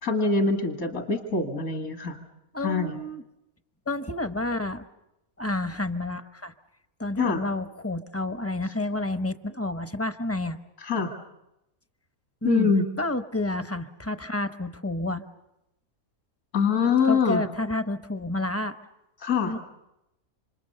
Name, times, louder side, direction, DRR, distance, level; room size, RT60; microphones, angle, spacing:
voice 1, 0.0-2.2 2.6-3.0 7.2-7.4 10.8-11.1 12.4-12.9 16.5-17.4 19.2-19.5, left 5 dB, 70° left, 4 dB, 2.4 m, -24 dB
voice 2, 2.5-3.2 3.9-4.8 5.4-6.5 7.0-10.6 12.4-12.7 13.0-15.2 17.1-18.7 19.4-19.6, left 2 dB, 15° left, 10 dB, 0.6 m, -29 dB
28.0 x 26.0 x 6.8 m, 0.86 s
omnidirectional pair, 1.5 m